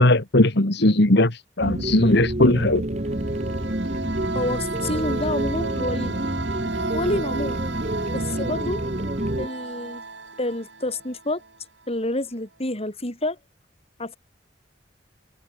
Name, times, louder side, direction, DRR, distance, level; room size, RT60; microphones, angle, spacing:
voice 1, 0.0-2.8, left 1 dB, 65° left, 2.3 m, -18 dB
sound 1, 1.6-9.5, right 1 dB, 35° right, 2.1 m, -28 dB
sound 2, 3.0-11.6, right 3 dB, 70° right, 5.3 m, -33 dB
voice 2, 4.3-6.2 6.9-7.6 8.1-8.8 9.4-10.0 10.4-11.4 11.9-13.4 14.0-14.2, left 1 dB, 35° left, 7.3 m, -28 dB
head